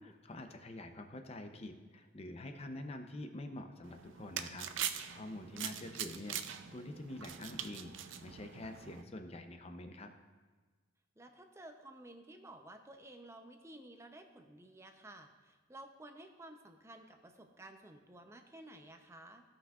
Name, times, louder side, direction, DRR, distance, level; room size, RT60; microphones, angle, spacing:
voice 1, 0.0-10.1, left 1 dB, 30° left, 6 dB, 0.6 m, -47 dB
sound 1, 3.8-9.0, right 9 dB, 70° right, 0.5 m, -43 dB
voice 2, 5.5-5.9 11.2-19.4, right 1 dB, 15° right, 5 dB, 0.6 m, -54 dB
16.5 x 5.8 x 2.4 m, 1.4 s
head